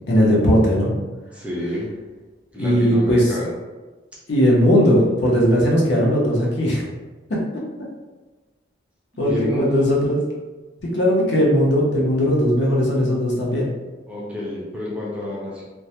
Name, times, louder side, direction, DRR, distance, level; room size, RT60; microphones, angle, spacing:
voice 1, 0.1-0.9 2.6-3.3 4.3-6.8 7.3-7.4 9.2-10.2 10.9-13.7, equal, 70° left, -3 dB, 0.6 m, -18 dB
voice 2, 1.3-1.9 2.5-3.5 9.1-9.9 14.1-15.6, equal, 5° right, -5 dB, 0.4 m, -28 dB
2.2 x 2.0 x 2.8 m, 1.2 s
head